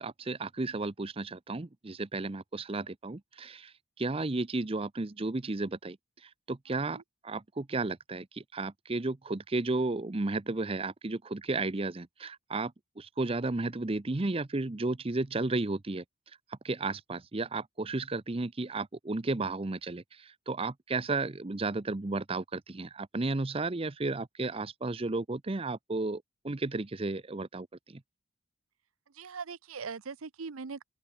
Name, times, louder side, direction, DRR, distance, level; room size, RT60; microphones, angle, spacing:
voice 1, 0.0-6.0 6.2-16.0 16.6-28.0, right 3 dB, 25° right, 0.6 m, -33 dB
voice 2, 29.1-30.8, right 5 dB, 90° right, 0.8 m, -40 dB
open air
head